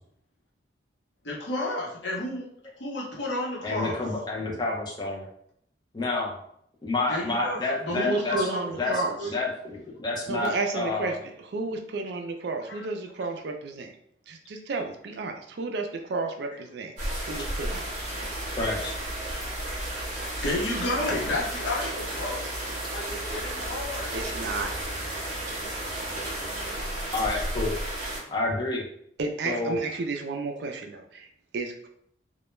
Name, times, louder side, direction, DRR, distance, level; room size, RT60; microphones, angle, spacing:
voice 1, 1.2-2.5 2.8-4.0 7.1-9.3 12.7-12.9 18.2-18.3 19.2-19.9 20.4-22.5 22.9-24.1, left 1 dB, 80° left, -3 dB, 0.8 m, -32 dB
voice 2, 3.6-5.3 5.9-6.3 6.8-8.5 8.8-8.9 9.3-11.1 18.6-18.9 27.1-27.7 28.3-28.8 29.4-29.7, left 3 dB, 25° left, -3 dB, 0.5 m, -29 dB
voice 3, 7.9-9.2 10.3-11.2 11.4-13.9 14.3-16.9 17.2-18.5 24.1-24.7 29.2-31.9, right 3 dB, 65° right, 5 dB, 0.3 m, -32 dB
sound 1, 17.0-28.2, right 1 dB, 45° right, 0.8 m, -33 dB
2.2 x 2.1 x 3.0 m, 0.69 s
head